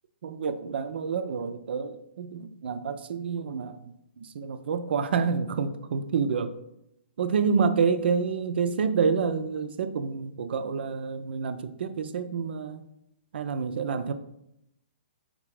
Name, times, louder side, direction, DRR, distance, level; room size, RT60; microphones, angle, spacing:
voice 1, 0.2-3.8 4.2-6.5 7.2-12.8 13.3-14.1, right 5 dB, 60° right, 10 dB, 0.4 m, -28 dB
3.8 x 3.3 x 3.1 m, 0.81 s
figure-of-eight pair, 125°, 6 cm